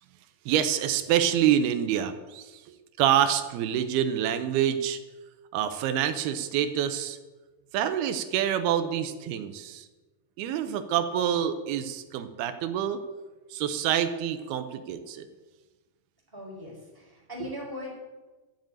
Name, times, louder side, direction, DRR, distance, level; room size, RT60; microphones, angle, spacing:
voice 1, 0.5-5.0 5.5-7.2 7.7-9.9 10.4-13.0 13.5-15.3 17.4-17.5, right 10 dB, 85° right, 9 dB, 2.8 m, -27 dB
voice 2, 16.3-17.9, left 1 dB, 5° right, -3 dB, 4.3 m, -39 dB
12.5 x 7.5 x 9.1 m, 1.2 s
omnidirectional pair, 4.4 m